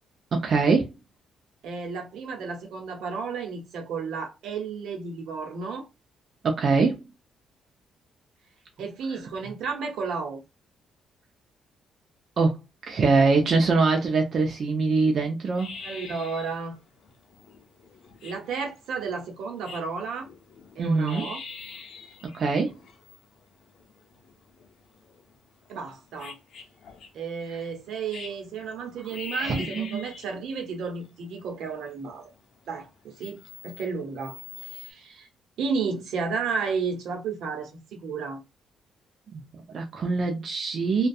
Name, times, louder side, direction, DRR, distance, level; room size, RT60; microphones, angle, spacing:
voice 1, 0.3-0.9 6.4-7.0 12.4-15.7 20.8-21.3 22.3-22.7 29.4-30.0 39.3-41.1, right 4 dB, 50° right, 0.5 m, -23 dB
voice 2, 1.6-5.9 8.8-10.4 15.8-16.8 18.2-20.3 20.7-21.4 25.7-26.4 27.1-32.3 32.7-35.3 35.6-38.4, right 5 dB, 80° right, 0.8 m, -32 dB
sound 1, 15.5-34.9, left 5 dB, 75° left, 0.5 m, -44 dB
2.5 x 2.2 x 2.3 m
cardioid pair, 90°, 0 cm